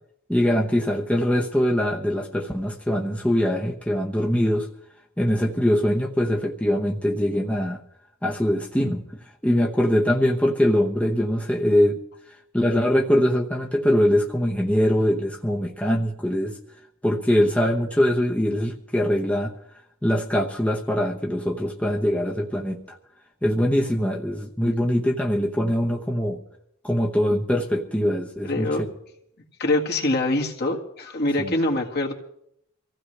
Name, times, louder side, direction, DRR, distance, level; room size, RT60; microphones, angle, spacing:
voice 1, 0.3-4.7 5.2-7.8 8.2-9.0 9.4-12.0 12.5-16.6 17.0-19.5 20.0-23.0 23.4-26.4 26.8-28.7 31.4-31.6, equal, 5° left, 0 dB, 0.9 m, -22 dB
voice 2, 28.4-28.8 29.6-32.1, left 2 dB, 50° left, 1 dB, 1.9 m, -24 dB
25.0 x 15.5 x 3.3 m, 0.74 s
head